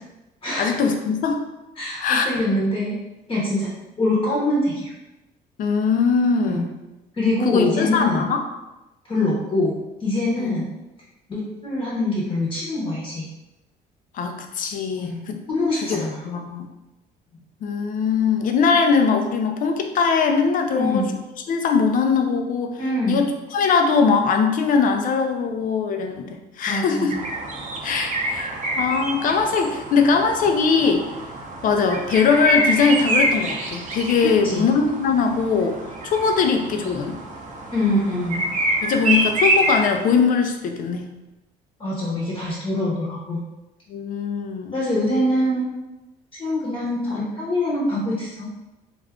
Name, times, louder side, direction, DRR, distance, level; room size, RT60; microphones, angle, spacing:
voice 1, 0.6-1.4 2.0-2.3 5.6-6.7 7.4-8.4 10.4-10.5 14.1-15.4 15.8-16.7 17.6-21.1 21.5-22.8 23.1-23.3 23.5-27.1 27.8-31.1 31.6-35.8 36.0-37.2 38.8-41.1 43.9-44.8, left 5 dB, 55° left, 5 dB, 0.4 m, -21 dB
voice 2, 1.8-3.0 3.3-3.7 4.0-4.9 6.5-6.6 7.2-8.2 9.1-10.7 11.3-13.2 15.0-16.2 20.7-21.1 22.8-23.2 26.7-27.2 34.4-34.7 37.7-38.4 41.8-43.4 44.7-45.6 46.4-48.5, left 1 dB, 30° left, -6 dB, 0.9 m, -24 dB
sound 1, 27.1-40.2, right 1 dB, 45° right, 0.5 m, -26 dB
2.4 x 2.3 x 3.5 m, 1.0 s
cardioid pair, 110°, 17 cm